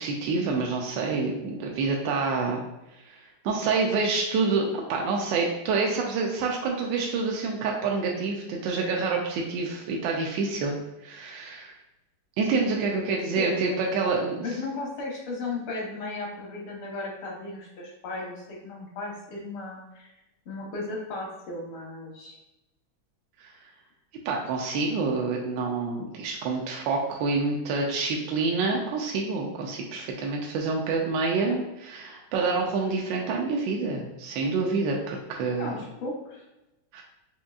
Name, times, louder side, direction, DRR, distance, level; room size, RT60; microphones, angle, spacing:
voice 1, 0.0-2.6 3.0-10.8 11.0-11.7 12.4-14.5 23.4-23.5 24.2-35.7 36.9-37.0, right 4 dB, 75° right, 0 dB, 1.1 m, -27 dB
voice 2, 13.4-13.8 14.4-20.1 20.5-22.4 35.6-36.4, left 2 dB, 80° left, -2 dB, 1.9 m, -35 dB
5.2 x 2.6 x 2.3 m, 0.95 s
omnidirectional pair, 2.3 m